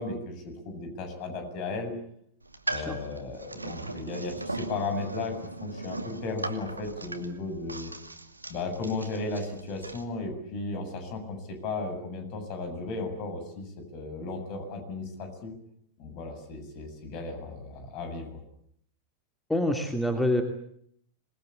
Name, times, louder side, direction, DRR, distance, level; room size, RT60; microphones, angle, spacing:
voice 1, 0.0-1.9 2.7-5.4 5.6-7.9 8.5-15.5 16.0-18.4, left 3 dB, 40° left, 7 dB, 7.7 m, -35 dB
sound 1, 2.4-10.0, right 2 dB, 85° right, 2.4 m, -39 dB
voice 2, 19.5-20.4, left 1 dB, 5° left, 5 dB, 2.7 m, -26 dB
27.0 x 21.0 x 8.6 m, 0.69 s
figure-of-eight pair, 90°, 0 cm